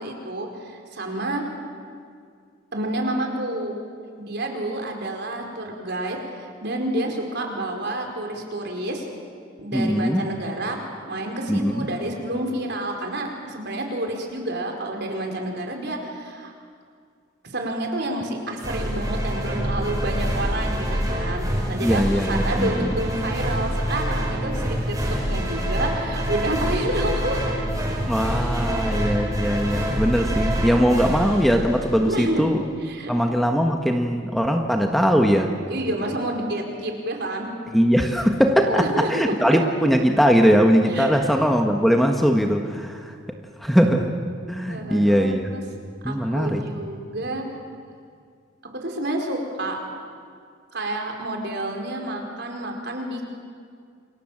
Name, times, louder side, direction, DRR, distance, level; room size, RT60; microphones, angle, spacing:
voice 1, 0.0-1.5 2.7-3.8 4.2-9.1 9.6-10.8 11.1-16.5 17.4-22.0 22.3-25.0 25.3-27.5 32.1-32.5 32.8-33.1 35.7-37.5 38.6-39.6 40.9-41.4 44.7-45.6 46.0-47.5 48.7-49.8 50.7-53.2, right 1 dB, 60° right, 2 dB, 4.7 m, -29 dB
voice 2, 9.7-10.2 11.5-11.9 21.8-22.9 28.1-32.6 33.1-35.5 37.7-43.1 43.6-44.1 44.5-45.5 46.0-46.6, equal, ahead, 3 dB, 1.4 m, -20 dB
sound 1, 18.6-32.2, equal, 20° right, 5.7 m, -26 dB
29.0 x 25.5 x 7.5 m, 2.2 s
head